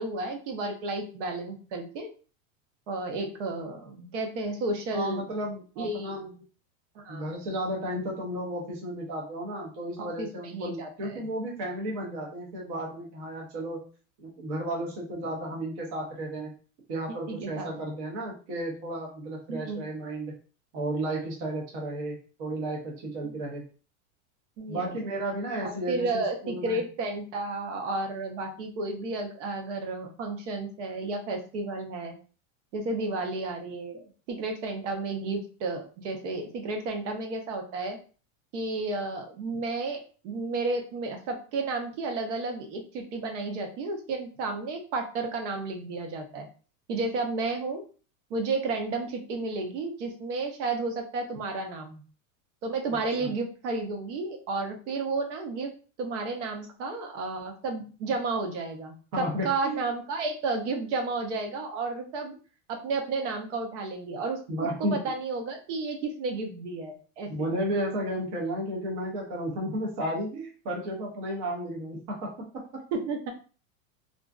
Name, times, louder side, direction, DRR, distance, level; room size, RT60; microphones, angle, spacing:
voice 1, 0.0-2.1 2.9-5.2 5.8-6.1 7.0-7.3 10.0-11.3 17.1-17.7 19.5-19.8 23.2-23.3 24.6-25.0 25.6-32.2 32.7-38.0 38.5-46.5 46.9-47.8 48.3-52.0 52.6-55.7 56.0-62.4 62.7-64.4 64.8-67.5 72.9-73.3, right 3 dB, 65° right, 3 dB, 0.7 m, -32 dB
voice 2, 4.9-6.3 7.1-13.8 14.2-16.5 16.9-20.4 20.7-23.6 24.7-26.8 52.9-53.3 59.1-59.8 64.5-65.0 67.3-72.8, right 1 dB, 30° right, -2 dB, 0.5 m, -33 dB
2.5 x 2.3 x 2.2 m, 0.37 s
supercardioid pair, 180°, 39 cm